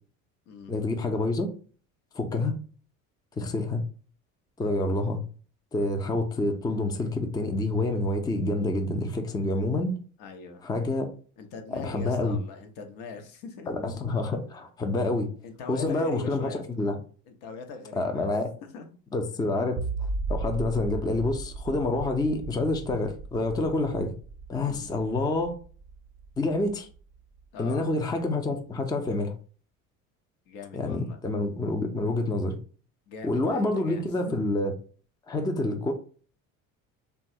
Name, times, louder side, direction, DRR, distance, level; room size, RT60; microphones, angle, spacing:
voice 1, 0.7-1.5 2.2-2.5 3.4-3.8 4.6-5.2 5.7-10.0 10.6-11.1 11.7-12.4 13.7-15.3 15.7-16.5 16.8-16.9 18.0-18.5 19.1-19.8 20.3-24.1 24.5-25.5 26.4-26.9 27.6-29.3 30.7-32.6 33.2-34.7 35.3-35.9, left 2 dB, 10° left, 5 dB, 0.5 m, -27 dB
voice 2, 10.2-10.6 11.4-13.8 15.4-16.6 17.3-18.3 18.6-18.9 19.3-19.4 24.7-24.9 27.5-27.9 30.5-31.2 33.1-34.5, left 4 dB, 65° left, 5 dB, 0.8 m, -41 dB
sound 1, 19.8-27.0, right 3 dB, 30° right, 0.7 m, -36 dB
3.0 x 2.3 x 2.7 m, 0.40 s
hypercardioid pair, 70°, 42 cm